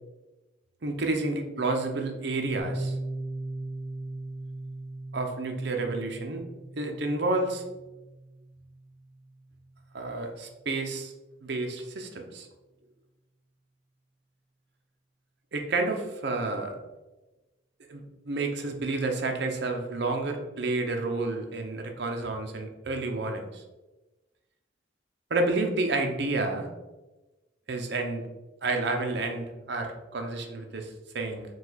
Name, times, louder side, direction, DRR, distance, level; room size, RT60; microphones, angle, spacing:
voice 1, 0.8-2.9 5.1-6.4 6.8-7.6 9.9-11.1 11.4-12.5 15.5-16.8 17.9-23.6 25.3-26.7 27.7-28.2 28.6-31.5, right 2 dB, 65° right, 3 dB, 0.6 m, -30 dB
Piano, 2.6-10.0, right 2 dB, 10° right, 0.8 m, -39 dB
4.7 x 2.3 x 4.0 m, 1.1 s
head